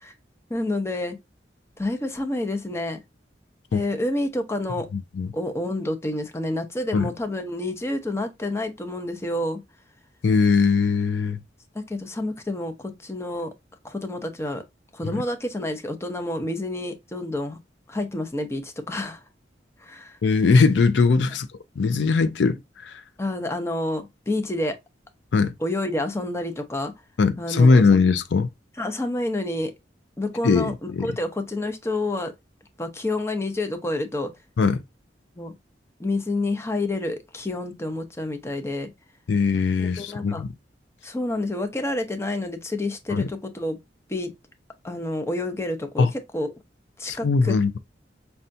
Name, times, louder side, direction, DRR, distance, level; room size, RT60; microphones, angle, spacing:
voice 1, 0.5-1.2 1.8-3.0 3.7-4.9 5.3-9.6 11.7-13.5 13.8-14.6 14.9-17.6 17.9-19.2 19.8-20.2 21.2-21.3 23.2-24.8 25.6-26.9 27.4-27.9 28.8-29.7 30.2-32.3 32.8-34.3 35.4-35.5 36.0-38.9 39.8-40.4 41.0-43.8 44.1-44.3 44.8-46.5 47.0-47.6, left 1 dB, 15° left, 0.6 m, -28 dB
voice 2, 4.9-5.3 6.9-7.1 10.2-11.4 15.0-15.2 20.2-21.5 21.8-23.0 25.3-25.5 27.2-28.5 30.4-31.1 34.6-34.8 39.3-40.5 43.1-43.3 46.0-46.1 47.0-47.8, left 4 dB, 75° left, 0.4 m, -20 dB
5.5 x 2.3 x 2.6 m
head